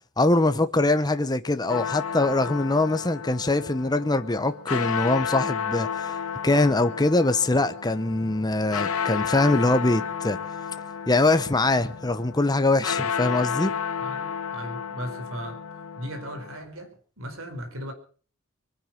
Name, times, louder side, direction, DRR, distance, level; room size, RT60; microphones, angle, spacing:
voice 1, 0.2-10.4 11.1-13.7, left 2 dB, 20° left, 0.9 m, -23 dB
sound 1, 1.7-16.6, left 7 dB, 80° left, 1.6 m, -32 dB
voice 2, 14.0-15.6 16.0-17.9, equal, 65° right, 4.6 m, -37 dB
23.5 x 10.0 x 5.9 m
head